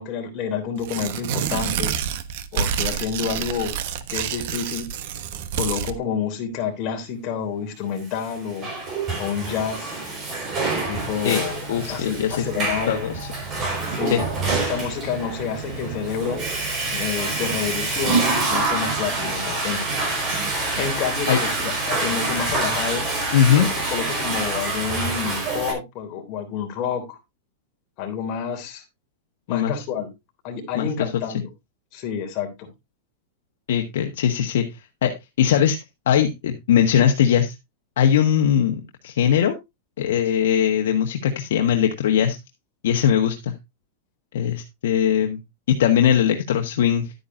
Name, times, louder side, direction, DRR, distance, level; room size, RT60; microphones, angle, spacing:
voice 1, 0.0-1.9 2.5-3.7 4.1-4.9 5.6-8.7 9.2-9.9 10.9-13.0 13.9-14.2 14.6-16.4 16.9-19.9 20.8-23.1 23.9-27.2 28.0-28.8 29.5-30.1 30.4-31.4 31.9-32.7, left 7 dB, 35° left, 3 dB, 3.2 m, -29 dB
Tearing, 0.8-5.9, right 8 dB, 55° right, 1.2 m, -28 dB
Water / Toilet flush, 8.2-25.7, right 3 dB, 25° right, 4.8 m, -26 dB
voice 2, 11.7-12.5 12.9-13.3 14.1-14.2 21.3-21.4 23.3-23.7 29.5-29.8 30.7-31.1 33.7-34.7 35.0-35.8 36.1-37.5 38.0-39.6 40.0-42.4 42.8-43.5 44.3-45.4 45.7-47.1, left 9 dB, 75° left, 4 dB, 1.3 m, -20 dB
11.5 x 9.5 x 2.6 m, 0.21 s
supercardioid pair, 165°, 0 cm